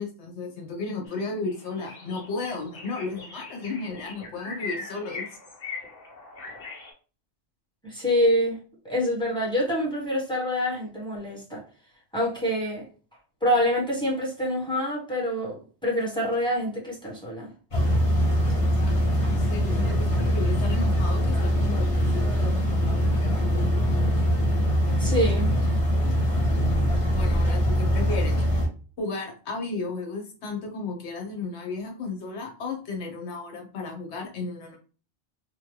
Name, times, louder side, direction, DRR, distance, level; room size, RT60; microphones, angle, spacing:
voice 1, 0.0-5.3 18.5-23.4 27.1-28.4 29.0-34.8, left 3 dB, 80° left, 2 dB, 1.2 m, -34 dB
sound 1, 1.1-1.2 1.5-6.9, left 4 dB, 60° left, 1.2 m, -40 dB
voice 2, 7.8-8.6 8.8-11.6 12.1-12.8 13.4-17.5 25.0-25.6 28.0-28.2, equal, 5° left, -3 dB, 1.1 m, -26 dB
sound 2, 17.7-28.7, equal, 30° left, 1.0 m, -23 dB
3.0 x 2.2 x 3.1 m, 0.37 s
omnidirectional pair, 1.1 m